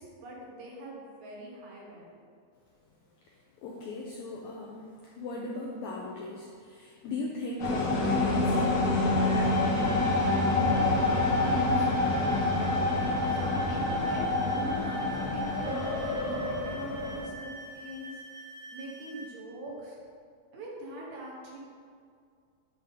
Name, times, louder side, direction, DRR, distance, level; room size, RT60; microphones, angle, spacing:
voice 1, 0.0-2.1 10.6-12.5 12.9-18.1 18.7-20.0 20.5-21.6, right 2 dB, 70° right, -3 dB, 2.1 m, -43 dB
voice 2, 3.3-9.7, left 2 dB, 85° left, -2 dB, 1.6 m, -39 dB
sound 1, 7.6-17.2, left 2 dB, 60° left, 1.2 m, -27 dB
sound 2, 9.2-19.3, right 1 dB, 45° left, 1.6 m, -46 dB
10.0 x 3.5 x 3.7 m, 2.2 s
omnidirectional pair, 3.9 m